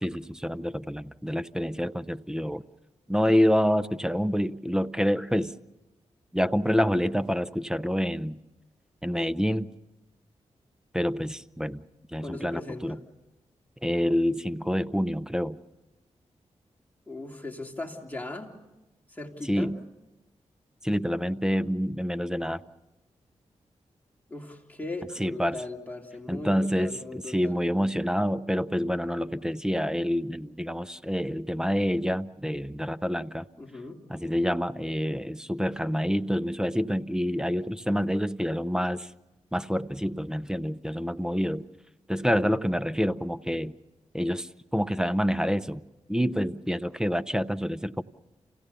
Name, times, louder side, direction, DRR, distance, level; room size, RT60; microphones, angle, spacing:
voice 1, 0.0-2.6 3.1-5.5 6.3-8.4 9.0-9.7 10.9-11.8 12.1-13.0 13.8-15.6 19.5-19.8 20.8-22.6 25.2-25.6 26.3-33.5 34.1-39.1 39.5-41.6 42.1-43.7 44.1-45.8 46.1-48.0, equal, 5° right, 15 dB, 0.7 m, -27 dB
voice 2, 12.1-13.0 17.1-18.5 19.1-19.7 24.3-27.6 33.6-34.0, left 2 dB, 15° left, 1 dB, 3.1 m, -38 dB
28.5 x 17.0 x 6.9 m, 1.1 s
cardioid pair, 50°, 12 cm